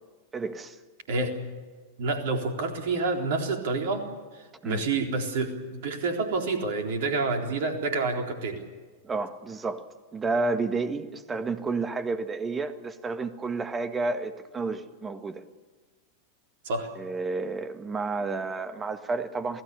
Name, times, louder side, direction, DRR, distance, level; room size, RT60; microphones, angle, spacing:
voice 1, 0.3-0.8 4.6-4.8 9.0-9.8 10.1-15.5 16.9-19.6, right 3 dB, 15° right, 10 dB, 1.7 m, -31 dB
voice 2, 1.1-1.4 2.0-4.1 4.3-8.6 16.6-16.9, right 3 dB, 55° right, 4 dB, 3.9 m, -28 dB
28.0 x 18.0 x 6.9 m, 1.4 s
figure-of-eight pair, 90°, 0 cm